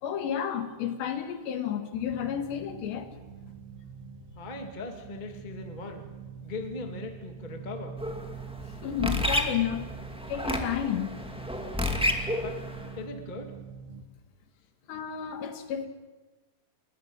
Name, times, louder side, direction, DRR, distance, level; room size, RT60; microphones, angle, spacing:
voice 1, 0.0-3.1 8.8-9.9 10.3-11.2 14.9-15.9, left 9 dB, 80° left, 7 dB, 4.0 m, -31 dB
sound 1, 1.9-14.0, right 6 dB, 85° right, 4.0 m, -45 dB
voice 2, 4.3-6.1 6.4-8.0 12.4-12.6 12.9-13.5, left 3 dB, 20° left, 4 dB, 1.1 m, -39 dB
sound 2, 8.0-12.9, left 1 dB, 5° right, 0.5 m, -31 dB
29.5 x 14.5 x 9.0 m, 1.2 s
omnidirectional pair, 4.9 m